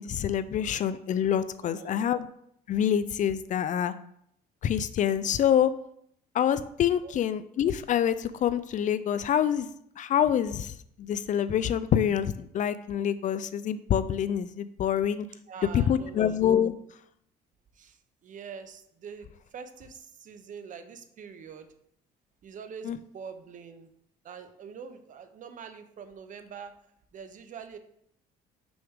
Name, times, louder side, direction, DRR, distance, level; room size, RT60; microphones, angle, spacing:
voice 1, 0.0-2.3 2.7-3.9 4.6-5.7 6.3-9.7 10.0-15.3 15.7-16.7 22.8-23.0, left 9 dB, 50° left, 14 dB, 0.4 m, -26 dB
voice 2, 1.6-2.1 7.0-7.1 15.5-16.4 17.8-18.0 18.2-19.3 19.5-21.7 22.4-23.9 24.2-26.7 27.1-27.8, right 6 dB, 50° right, 9 dB, 0.8 m, -44 dB
6.1 x 5.9 x 3.6 m, 0.71 s
cardioid pair, 110°, 17 cm